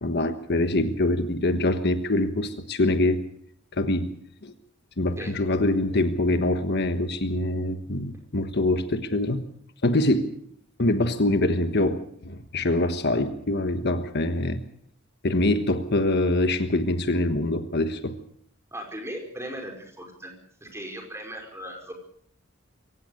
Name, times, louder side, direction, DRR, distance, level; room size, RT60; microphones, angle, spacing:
voice 1, 0.0-3.2 3.7-4.1 4.4-4.5 5.0-9.4 9.8-10.3 10.8-14.6 15.2-18.2, left 1 dB, 55° left, 9 dB, 1.3 m, -24 dB
voice 2, 18.7-20.3 20.6-21.9, equal, 15° right, 2 dB, 5.1 m, -37 dB
23.0 x 17.5 x 6.6 m, 0.63 s
head